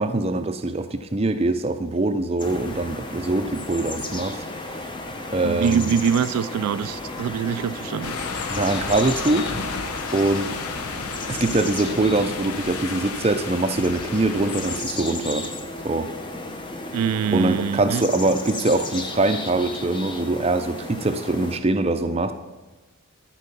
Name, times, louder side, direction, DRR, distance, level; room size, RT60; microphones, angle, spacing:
voice 1, 0.0-4.4 5.3-6.0 8.5-9.6 10.1-10.5 11.3-15.4 15.8-16.1 17.3-22.3, right 2 dB, 25° right, 8 dB, 0.5 m, -23 dB
sound 1, 2.4-21.6, left 2 dB, 20° left, 0.7 m, -34 dB
voice 2, 5.4-8.1 16.9-18.0, right 7 dB, 85° right, 16 dB, 0.3 m, -24 dB
sound 2, 8.0-14.8, left 4 dB, 80° left, 0.9 m, -32 dB
13.0 x 4.6 x 6.8 m, 1.2 s
head